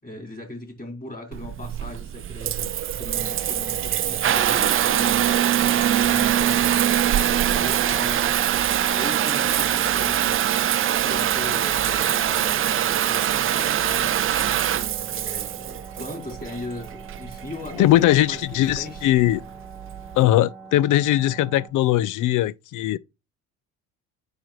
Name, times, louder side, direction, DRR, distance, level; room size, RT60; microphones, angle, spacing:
voice 1, 0.0-5.5 5.9-8.4 8.9-10.4 11.0-14.5 15.1-19.4, left 2 dB, 20° left, 4.1 m, -38 dB
Water tap faucet / Bathtub (filling or washing) / Trickle dribble, 1.3-20.2, right 11 dB, 30° right, 0.5 m, -23 dB
sound 1, 3.1-21.7, right 3 dB, 5° left, 2.0 m, -42 dB
voice 2, 17.8-19.4 20.2-23.0, left 14 dB, 50° left, 0.4 m, -20 dB
9.2 x 4.7 x 3.0 m
hypercardioid pair, 65°, 42 cm